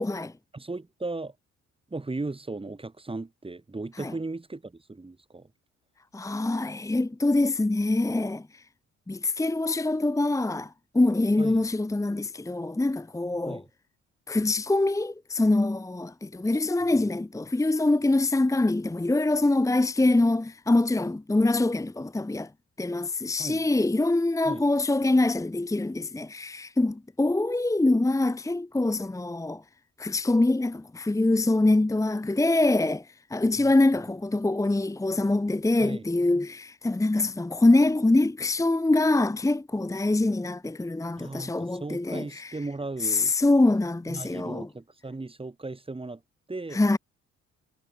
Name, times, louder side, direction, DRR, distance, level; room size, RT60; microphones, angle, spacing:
voice 1, 0.0-0.3 4.0-4.1 6.1-8.6 9.1-13.6 14.3-22.5 22.8-29.6 30.0-42.6 43.0-44.7 46.7-47.0, left 2 dB, 10° left, 1.1 m, -24 dB
voice 2, 0.5-1.3 1.9-5.5 11.4-11.7 13.4-13.6 23.4-23.7 24.4-24.6 35.8-36.1 41.2-43.3 44.1-46.2 46.5-46.8, right 3 dB, 20° right, 4.3 m, -36 dB
cardioid pair, 90°, 30 cm